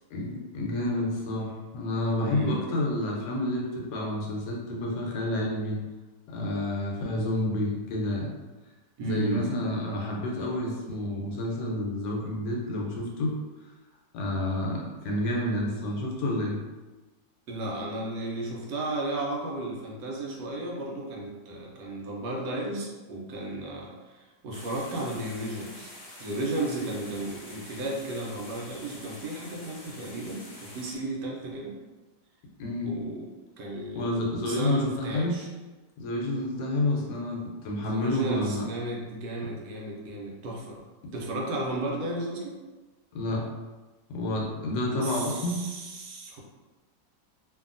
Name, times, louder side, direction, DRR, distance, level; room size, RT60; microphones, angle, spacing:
voice 1, 0.1-5.8 6.3-8.3 9.0-13.3 14.1-16.6 32.6-32.9 33.9-35.4 36.0-38.6 43.1-43.4 44.1-45.6, left 1 dB, 75° left, -1 dB, 1.2 m, -29 dB
voice 2, 2.2-2.6 9.0-9.5 17.5-25.9 26.2-31.8 32.8-33.3 33.6-35.5 37.8-40.8 41.1-42.6 44.8-46.4, right 2 dB, 75° right, -1 dB, 1.2 m, -34 dB
sound 1, 24.5-31.0, left 1 dB, 55° left, 0.5 m, -46 dB
2.8 x 2.6 x 2.4 m, 1.2 s
omnidirectional pair, 1.9 m